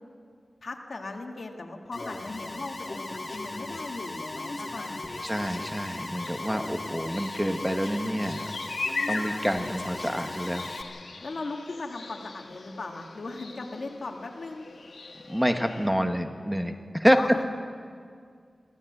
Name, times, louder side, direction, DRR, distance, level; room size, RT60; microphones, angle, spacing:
voice 1, 0.6-5.2 11.2-14.7 17.2-17.4, left 3 dB, 65° left, 2 dB, 1.8 m, -38 dB
Alarm, 1.9-10.8, left 2 dB, 45° left, 2.1 m, -37 dB
voice 2, 5.2-8.5 9.1-10.7 15.3-17.4, equal, 5° right, 6 dB, 1.4 m, -27 dB
sound 1, 5.9-15.9, left 3 dB, 90° left, 1.9 m, -40 dB
23.5 x 15.0 x 7.9 m, 2.1 s
wide cardioid pair, 90°, 0 cm